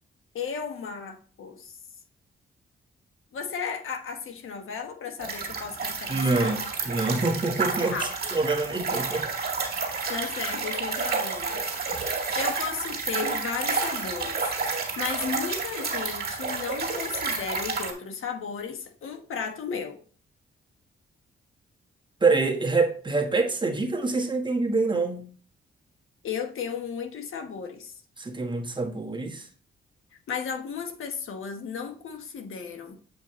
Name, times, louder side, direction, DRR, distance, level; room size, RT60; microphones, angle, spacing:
voice 1, 0.3-1.8 3.3-6.6 7.9-8.1 10.1-11.6 12.3-14.4 14.7-20.0 26.2-28.0 30.3-33.0, left 6 dB, 75° left, 1.3 m, -34 dB
sound 1, 5.2-17.9, right 4 dB, 50° right, 2.0 m, -30 dB
voice 2, 6.1-9.3 22.2-25.3 28.2-29.5, right 3 dB, 20° right, 1.3 m, -26 dB
7.8 x 5.3 x 3.1 m
cardioid pair, 95°, 21 cm